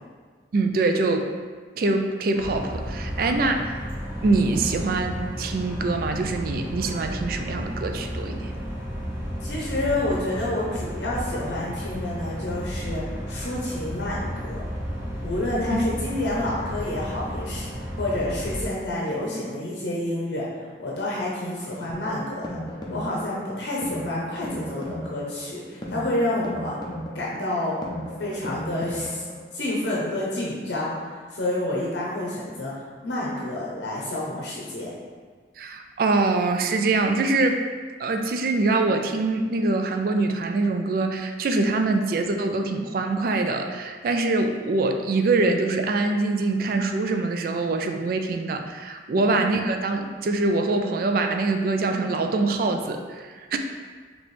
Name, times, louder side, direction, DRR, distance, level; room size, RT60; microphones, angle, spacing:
voice 1, 0.5-1.3 1.8-3.7 4.2-8.5 15.7-15.8 35.6-37.6 38.0-53.6, right 3 dB, 50° right, 5 dB, 0.3 m, -24 dB
sound 1, 2.3-18.6, equal, 10° right, 0.7 m, -33 dB
voice 2, 9.4-13.0 13.3-14.6 15.2-17.7 18.0-20.4 20.8-22.6 22.9-26.8 27.1-27.8 28.2-29.2 29.5-30.9 31.3-32.7 33.0-34.9 49.1-49.4, left 1 dB, 70° left, -5 dB, 0.7 m, -29 dB
sound 2, 21.6-29.6, equal, 20° left, 0.5 m, -36 dB
4.2 x 2.9 x 3.2 m, 1.5 s
head